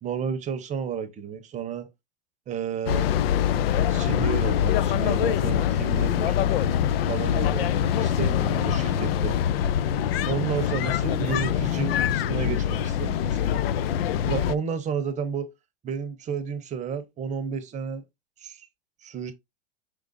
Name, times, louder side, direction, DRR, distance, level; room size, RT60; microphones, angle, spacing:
voice 1, 0.0-1.9 2.5-3.1 3.9-6.4 7.1-7.7 8.0-9.4 10.2-13.6 14.3-15.5 15.8-18.0 18.4-18.7 19.0-19.3, right 6 dB, 25° right, 0.8 m, -32 dB
sound 1, 2.9-14.5, left 9 dB, 70° left, 0.5 m, -24 dB
5.0 x 3.8 x 2.5 m
hypercardioid pair, 110°, 31 cm